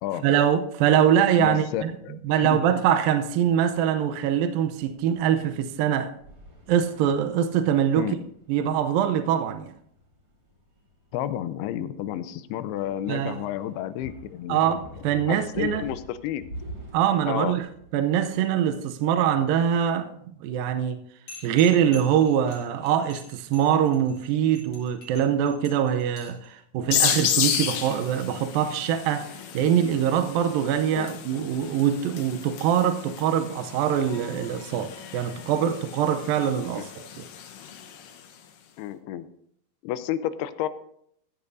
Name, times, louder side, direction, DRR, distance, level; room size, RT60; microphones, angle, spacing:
voice 1, 0.2-1.9 2.2-6.1 6.7-8.2 8.5-9.7 13.1-13.4 14.5-15.8 16.9-17.7 17.9-20.1 20.4-21.0 21.4-37.2, right 9 dB, 80° right, 2.3 m, -23 dB
voice 2, 1.4-2.7 8.0-8.2 11.1-14.6 15.3-16.4 17.3-17.6 31.0-31.1 36.7-36.9 38.8-39.3 39.8-40.7, left 11 dB, 85° left, 2.7 m, -31 dB
sound 1, 3.2-18.9, equal, 30° right, 3.5 m, -47 dB
sound 2, 21.3-26.5, left 3 dB, 40° left, 4.7 m, -46 dB
sound 3, 26.9-38.3, left 9 dB, 70° left, 2.4 m, -32 dB
15.0 x 14.0 x 2.7 m
omnidirectional pair, 4.5 m